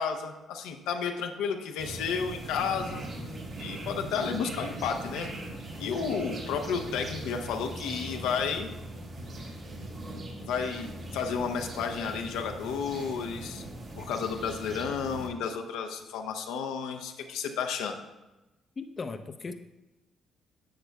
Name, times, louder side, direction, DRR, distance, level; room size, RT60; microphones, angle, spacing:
voice 1, 0.0-3.0 3.6-5.3 5.8-8.7 10.5-13.6 14.0-18.0, left 6 dB, 85° left, 4 dB, 0.6 m, -32 dB
sound 1, 1.8-15.3, right 1 dB, 60° right, 2.2 m, -40 dB
voice 2, 18.8-19.5, left 4 dB, 40° left, 8 dB, 0.5 m, -37 dB
10.0 x 6.9 x 2.3 m, 1.0 s
supercardioid pair, 60°, 0 cm